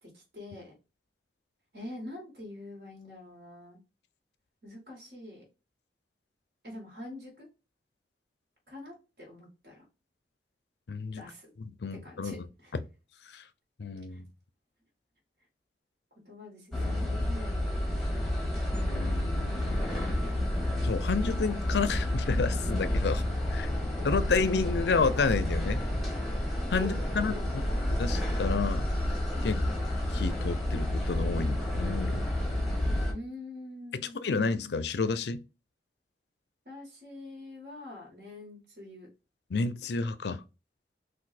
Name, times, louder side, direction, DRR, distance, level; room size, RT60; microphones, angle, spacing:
voice 1, 0.0-0.7 1.7-3.8 4.6-5.4 6.6-7.5 8.7-9.9 11.2-11.5 12.0-12.7 14.1-14.2 16.2-17.9 26.7-27.8 33.1-34.3 36.7-39.1, left 1 dB, 55° right, 1.8 m, -45 dB
voice 2, 10.9-11.2 11.8-12.4 13.3-13.4 13.8-14.3 18.8-20.0 20.8-23.2 23.5-23.7 24.0-25.8 26.7-27.3 28.0-28.9 29.4-29.6 30.1-32.3 34.2-35.4 39.5-40.4, left 4 dB, 75° left, 0.5 m, -30 dB
sound 1, 16.7-33.1, left 1 dB, ahead, 1.1 m, -30 dB
4.0 x 2.6 x 4.2 m
head